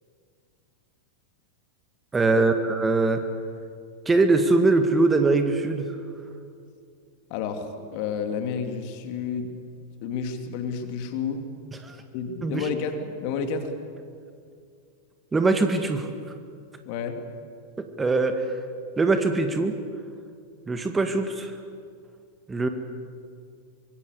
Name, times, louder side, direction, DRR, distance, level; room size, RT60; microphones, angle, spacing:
voice 1, 2.1-3.2 4.1-5.9 11.8-12.0 12.4-12.7 15.3-16.1 18.0-18.5 19.0-19.8 20.7-21.5 22.5-22.7, right 3 dB, 15° right, 7 dB, 1.9 m, -22 dB
voice 2, 7.3-9.5 10.0-11.4 12.1-13.7 16.9-17.2, left 6 dB, 45° left, 6 dB, 2.9 m, -30 dB
25.0 x 22.0 x 8.3 m, 2.3 s
figure-of-eight pair, 90°, 0 cm